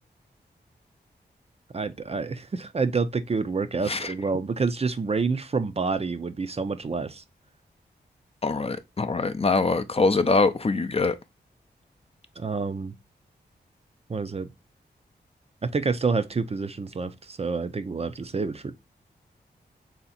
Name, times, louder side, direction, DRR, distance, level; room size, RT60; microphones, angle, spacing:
voice 1, 1.7-7.2 12.4-12.9 14.1-14.5 15.7-18.7, right 4 dB, 35° right, 0.5 m, -28 dB
voice 2, 8.4-11.2, left 3 dB, 35° left, 0.5 m, -23 dB
3.4 x 2.8 x 4.0 m
cardioid pair, 55°, 18 cm